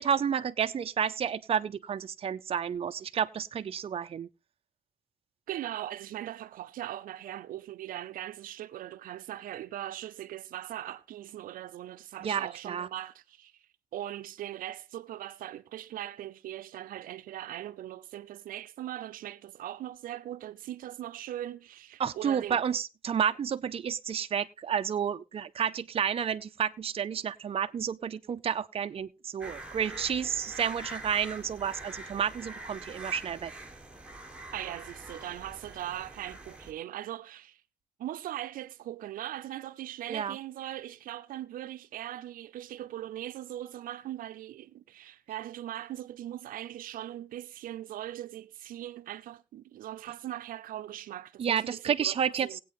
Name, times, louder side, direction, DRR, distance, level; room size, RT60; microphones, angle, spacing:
voice 1, 0.0-4.3 12.2-12.9 22.0-33.5 40.1-40.4 51.4-52.6, right 8 dB, 45° right, 0.6 m, -31 dB
voice 2, 5.5-13.5 13.9-22.6 34.5-37.6 38.0-52.2 52.4-52.6, right 13 dB, 85° right, 0.6 m, -40 dB
sound 1, 29.4-36.7, right 2 dB, 10° right, 1.9 m, -45 dB
19.0 x 8.4 x 3.1 m
cardioid pair, 105°, 14 cm